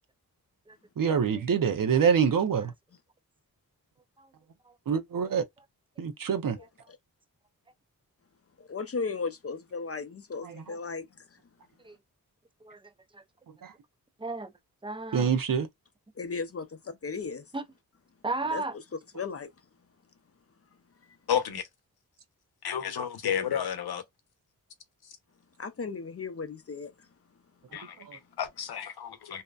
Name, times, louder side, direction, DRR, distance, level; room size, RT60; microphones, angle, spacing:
voice 1, 1.0-2.7 4.9-5.5 6.0-6.6 10.4-10.5 13.6-13.7 15.1-15.7 28.1-28.2, right 7 dB, 60° right, 0.7 m, -25 dB
voice 2, 6.6-7.0 8.6-11.1 16.2-17.4 18.5-18.6 19.1-19.5 25.6-26.9, left 4 dB, 40° left, 0.6 m, -36 dB
voice 3, 12.6-13.2 14.2-14.5 14.8-15.3 17.5-17.6 18.2-18.7, right 2 dB, 15° right, 0.5 m, -35 dB
voice 4, 21.3-21.6 22.6-24.0 27.7-29.4, left 8 dB, 80° left, 0.8 m, -31 dB
2.7 x 2.1 x 2.4 m
cardioid pair, 55°, 38 cm